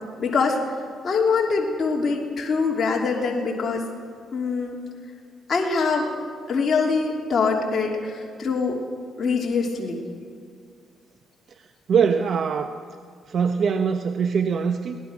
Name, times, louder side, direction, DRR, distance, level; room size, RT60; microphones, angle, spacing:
voice 1, 0.2-0.6 1.0-3.8 4.3-4.8 5.5-6.1 6.5-8.8 9.2-10.0, left 4 dB, 40° left, -2 dB, 3.1 m, -23 dB
voice 2, 11.9-12.7 13.3-15.0, right 6 dB, 55° right, 7 dB, 1.0 m, -22 dB
22.5 x 18.5 x 6.2 m, 2.1 s
cardioid pair, 90°, 0 cm